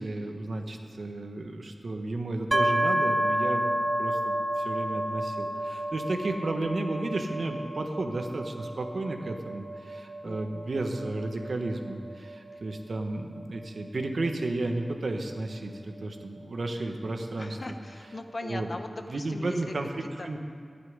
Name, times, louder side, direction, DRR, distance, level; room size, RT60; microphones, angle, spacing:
voice 1, 0.0-17.6 18.4-18.7 19.1-20.4, right 2 dB, 75° right, 4 dB, 1.3 m, -33 dB
sound 1, 2.5-16.2, right 1 dB, 20° right, 0.8 m, -31 dB
voice 2, 10.2-10.7 12.5-12.6 17.0-17.1 17.4-19.7 20.2-20.3, left 2 dB, 50° left, 7 dB, 1.0 m, -40 dB
12.0 x 8.7 x 9.6 m, 2.2 s
wide cardioid pair, 70°, 0 cm